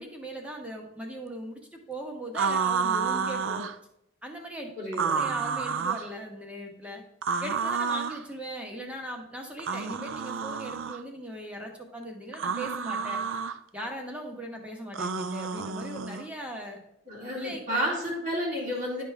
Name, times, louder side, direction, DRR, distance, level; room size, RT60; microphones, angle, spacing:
voice 1, 0.0-3.7 4.2-4.7 5.0-7.0 7.4-13.3 13.7-16.8 17.4-17.8, right 1 dB, 5° right, 1 dB, 1.3 m, -39 dB
sound 1, 2.3-3.8 4.9-6.1 7.2-8.2 9.6-11.0 12.3-13.6 14.9-16.3, right 6 dB, 75° right, 0.5 m, -30 dB
voice 2, 4.7-5.3 17.1-19.0, equal, 40° right, -5 dB, 2.9 m, -31 dB
11.0 x 5.2 x 3.5 m, 0.79 s
head